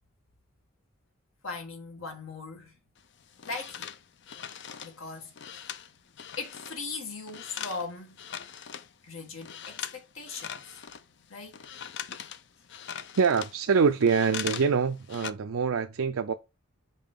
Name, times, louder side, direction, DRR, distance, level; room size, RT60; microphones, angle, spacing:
voice 1, 1.4-2.7 3.5-3.9 4.8-5.8 6.4-8.2 9.0-10.8 11.3-11.6, left 4 dB, 80° left, 1.8 m, -39 dB
sound 1, 3.0-6.8 7.1-8.9 9.3-10.0 10.3-14.7 15.0-15.3, left 8 dB, 55° left, 0.5 m, -40 dB
voice 2, 13.2-16.3, right 5 dB, 85° right, 0.5 m, -25 dB
5.5 x 4.8 x 3.7 m
head